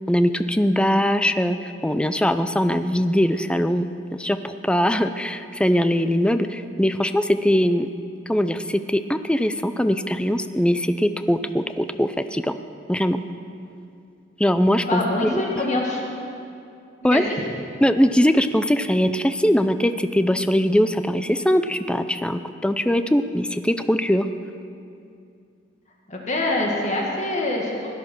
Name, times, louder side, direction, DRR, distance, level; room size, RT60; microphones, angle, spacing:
voice 1, 0.1-7.9 8.3-12.6 12.9-13.2 14.4-15.4 17.0-17.2 17.8-24.3, equal, 5° left, 10 dB, 0.4 m, -21 dB
voice 2, 14.8-16.0 17.0-17.2 26.1-27.9, left 2 dB, 40° left, -1 dB, 1.9 m, -25 dB
16.5 x 11.0 x 6.2 m, 2.5 s
head